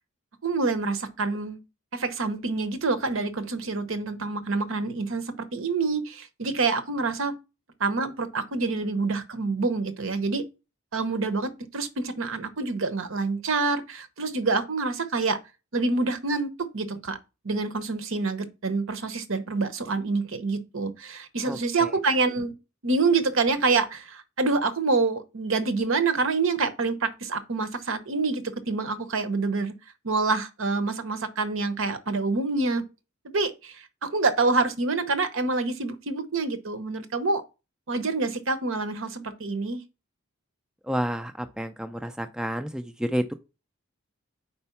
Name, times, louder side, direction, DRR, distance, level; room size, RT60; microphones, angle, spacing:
voice 1, 0.4-1.6 1.9-5.2 5.5-7.3 7.8-10.4 10.9-15.4 15.7-17.2 17.4-22.5 22.8-29.7 30.0-32.8 33.3-33.7 34.0-37.4 37.9-39.8, right 3 dB, 70° right, 0.9 m, -27 dB
voice 2, 40.9-43.3, equal, 5° right, 0.4 m, -30 dB
4.4 x 4.3 x 5.6 m
head